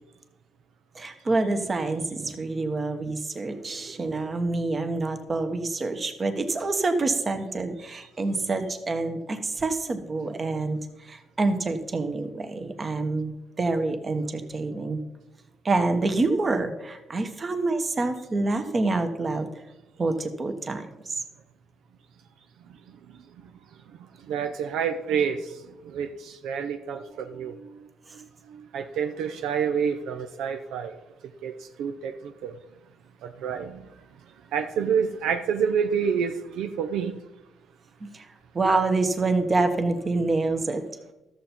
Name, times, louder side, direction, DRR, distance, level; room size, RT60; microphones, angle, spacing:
voice 1, 0.9-10.8 11.0-15.0 15.6-19.5 20.0-21.2 38.0-38.3 38.5-40.8, right 3 dB, 35° right, 1.3 m, -27 dB
voice 2, 24.3-25.5 25.9-27.6 28.5-31.0 31.4-32.5 33.2-33.8 34.5-37.2, right 7 dB, 85° right, 0.6 m, -28 dB
13.0 x 6.9 x 4.4 m
cardioid pair, 90°, 0 cm